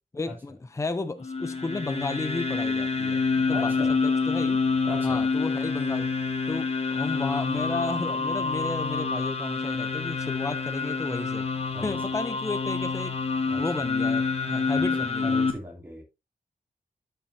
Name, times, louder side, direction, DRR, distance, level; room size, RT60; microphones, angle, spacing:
voice 1, 0.1-4.6 5.0-6.1 6.5-11.5 11.8-13.2 13.6-15.4, left 3 dB, 20° left, 0.5 m, -33 dB
sound 1, 1.2-15.5, left 4 dB, 40° left, 1.2 m, -27 dB
voice 2, 3.5-3.9 4.8-5.2 11.7-11.8 13.5-13.6 14.7-14.8 15.2-16.0, left 1 dB, 15° right, 2.8 m, -37 dB
11.5 x 5.6 x 2.7 m
wide cardioid pair, 145°, 16 cm